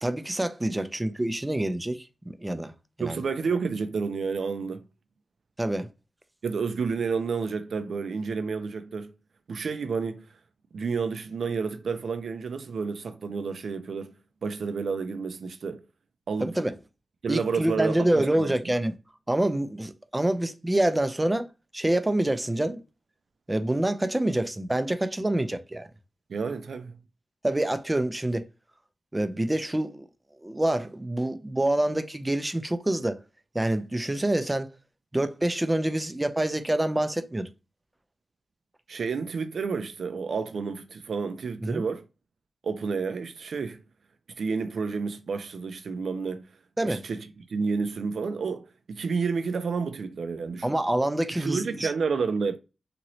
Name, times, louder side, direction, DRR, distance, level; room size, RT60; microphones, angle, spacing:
voice 1, 0.0-2.7 3.0-3.2 5.6-5.9 16.4-16.8 17.3-18.9 19.3-21.5 21.7-22.8 23.5-25.9 27.4-28.5 29.1-30.0 30.4-33.2 33.5-34.7 35.1-37.5 41.6-41.8 46.8-47.0 50.6-51.9, right 1 dB, 15° right, 0.4 m, -26 dB
voice 2, 3.0-4.8 6.4-9.1 9.5-10.3 10.7-14.1 14.4-15.8 16.3-16.5 17.2-18.5 26.3-27.0 38.9-42.0 42.6-43.8 44.4-46.5 46.8-47.2 47.5-50.7 51.3-52.6, right 5 dB, 75° right, 0.4 m, -30 dB
3.0 x 2.6 x 2.9 m
cardioid pair, 70°, 0 cm